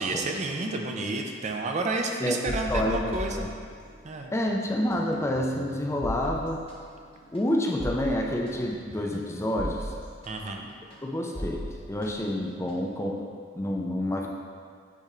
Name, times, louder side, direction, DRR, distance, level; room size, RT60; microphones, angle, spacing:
voice 1, 0.0-3.5 4.0-4.3 10.3-10.7, right 2 dB, 35° right, 2 dB, 0.5 m, -30 dB
voice 2, 2.2-3.5 4.3-6.6 7.3-9.9 11.0-13.2 13.5-14.3, left 1 dB, 15° left, 0 dB, 0.5 m, -28 dB
sound 1, 2.5-4.2 4.5-13.1, equal, 30° left, 1.1 m, -38 dB
8.3 x 4.3 x 3.8 m, 2.1 s
head